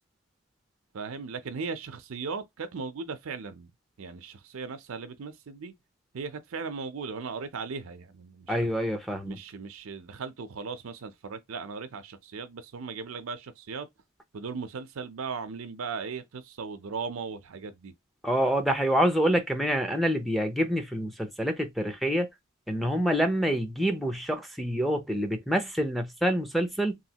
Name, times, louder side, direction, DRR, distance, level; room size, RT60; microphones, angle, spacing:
voice 1, 0.9-3.7 4.0-5.7 6.1-8.7 9.2-13.9 14.3-17.9, right 5 dB, 80° right, 0.5 m, -37 dB
voice 2, 8.5-9.4 18.2-22.3 22.7-27.0, equal, ahead, 0.5 m, -27 dB
3.1 x 2.6 x 2.8 m
head